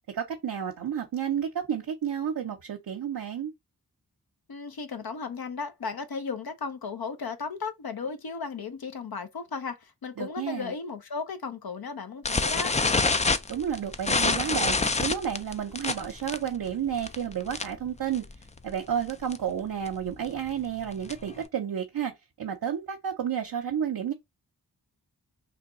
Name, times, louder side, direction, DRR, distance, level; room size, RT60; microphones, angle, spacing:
voice 1, 0.1-3.5 10.2-10.7 13.5-18.3 18.6-24.1, right 8 dB, 60° right, 0.7 m, -31 dB
voice 2, 4.5-12.8, left 5 dB, 60° left, 0.8 m, -35 dB
sound 1, 12.2-17.9 18.1-18.4 18.7-18.8 19.1-19.4 19.9-21.4, left 3 dB, 20° left, 0.4 m, -27 dB
3.2 x 2.2 x 3.8 m
cardioid pair, 40°, 41 cm